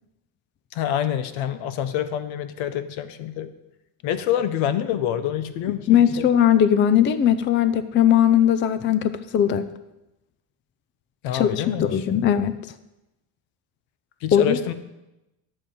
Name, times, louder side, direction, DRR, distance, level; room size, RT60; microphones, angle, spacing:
voice 1, 0.7-3.5 4.0-6.3 11.2-12.0 14.2-14.7, left 10 dB, 80° left, 12 dB, 1.0 m, -27 dB
voice 2, 5.9-9.7 11.3-12.6 14.3-14.7, left 9 dB, 25° left, 13 dB, 0.4 m, -19 dB
11.5 x 7.8 x 5.3 m, 0.96 s
cardioid pair, 150°, 47 cm